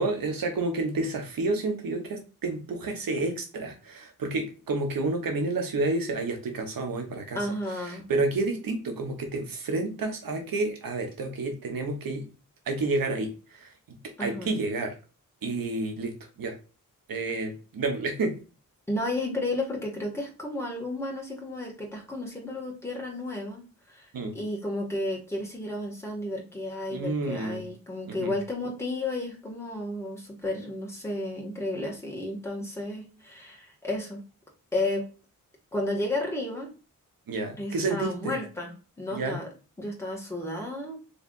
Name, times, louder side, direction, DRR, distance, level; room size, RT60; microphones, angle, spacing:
voice 1, 0.0-7.5 7.8-12.3 12.7-14.9 15.4-16.5 17.1-18.4 24.1-24.3 26.9-27.7 28.1-28.3 37.3-38.4 39.1-39.4, right 2 dB, 85° right, 4 dB, 1.2 m, -30 dB
voice 2, 7.3-8.1 14.2-14.6 18.9-23.6 23.9-34.2 34.7-35.1 35.7-36.7 37.6-38.7 39.0-39.5 39.8-41.0, left 1 dB, 10° left, -1 dB, 1.7 m, -32 dB
4.7 x 3.4 x 2.5 m, 0.33 s
cardioid pair, 70°, 34 cm